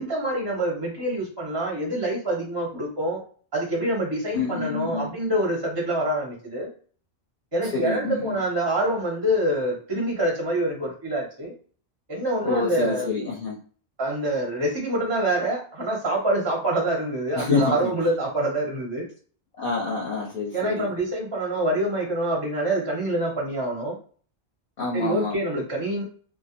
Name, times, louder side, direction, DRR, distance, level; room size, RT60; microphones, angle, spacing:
voice 1, 0.0-3.2 3.5-6.7 7.5-11.5 12.1-13.1 14.0-19.1 20.5-24.0 24.9-26.0, right 1 dB, 30° right, -1 dB, 0.6 m, -26 dB
voice 2, 4.3-5.1 7.6-8.4 12.4-13.6 17.3-17.9 19.6-20.9 24.8-25.4, left 4 dB, 50° left, -1 dB, 0.7 m, -27 dB
2.2 x 2.0 x 2.8 m, 0.43 s
omnidirectional pair, 1.1 m